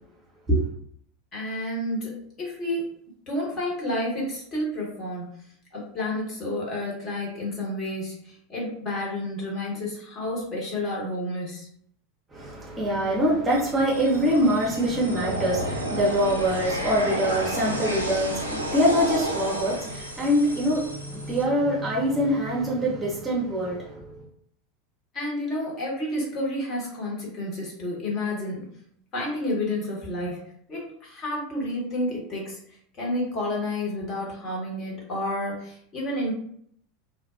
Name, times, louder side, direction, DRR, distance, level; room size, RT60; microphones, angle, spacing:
voice 1, 1.3-2.8 3.3-5.3 5.7-11.7 25.1-28.7 29.1-30.4 30.7-36.3, left 1 dB, 35° left, -3 dB, 1.1 m, -30 dB
voice 2, 12.3-23.8, equal, 20° right, -5 dB, 0.7 m, -24 dB
sound 1, 13.5-21.4, equal, 85° right, 0.4 m, -32 dB
2.5 x 2.1 x 2.4 m, 0.66 s
figure-of-eight pair, 80°, 0 cm